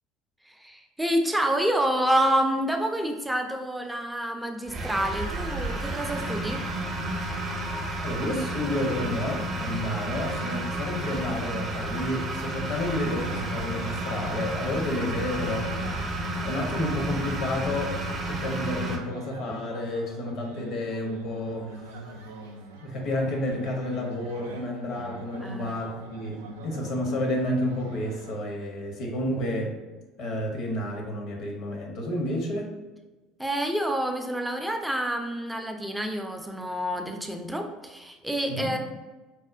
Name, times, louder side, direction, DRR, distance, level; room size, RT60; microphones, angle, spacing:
voice 1, 0.4-6.6 25.4-25.9 33.4-38.8, right 1 dB, 5° right, 4 dB, 0.4 m, -28 dB
sound 1, 4.7-19.0, right 1 dB, 45° right, 0.7 m, -31 dB
voice 2, 8.0-15.7 16.4-18.0 18.2-22.0 22.8-29.8 30.2-32.7 38.5-38.8, left 1 dB, 60° left, 1 dB, 0.7 m, -30 dB
sound 2, 12.9-28.4, right 3 dB, 85° right, 0.3 m, -44 dB
4.2 x 2.0 x 2.4 m, 1.2 s
hypercardioid pair, 70°, 0 cm